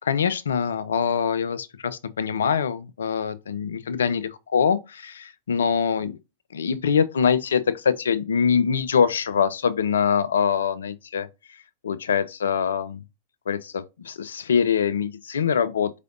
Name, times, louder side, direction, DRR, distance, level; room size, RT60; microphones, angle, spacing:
voice 1, 0.0-6.2 6.5-11.6 11.8-13.0 13.5-15.9, left 7 dB, 65° left, 0.4 m, -24 dB
4.6 x 3.3 x 2.5 m
figure-of-eight pair, 90°, 0 cm